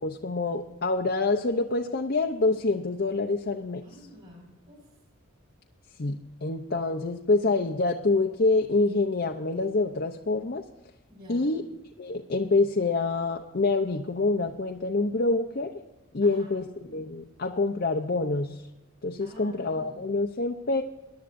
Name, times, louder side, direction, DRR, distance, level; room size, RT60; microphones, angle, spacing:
voice 1, 0.0-3.8 6.0-10.6 11.3-11.6 12.0-15.7 16.1-18.6 19.0-20.8, left 3 dB, 50° left, 3 dB, 0.7 m, -26 dB
voice 2, 3.8-4.9 11.1-11.5 16.2-16.5 19.2-20.1, equal, 45° right, -2 dB, 4.7 m, -49 dB
22.0 x 11.5 x 2.6 m, 1.0 s
head